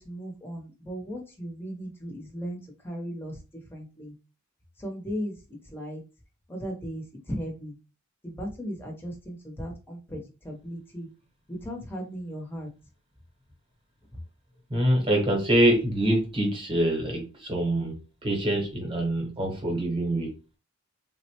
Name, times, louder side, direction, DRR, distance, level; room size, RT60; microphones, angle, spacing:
voice 1, 0.0-2.6 2.8-3.4 3.7-4.1 4.8-5.4 5.7-6.0 6.5-7.8 8.2-11.1 11.5-12.7, equal, 10° left, 0.7 m, -36 dB
voice 2, 14.7-20.3, right 1 dB, 25° right, 1.0 m, -25 dB
3.7 x 2.1 x 2.8 m
head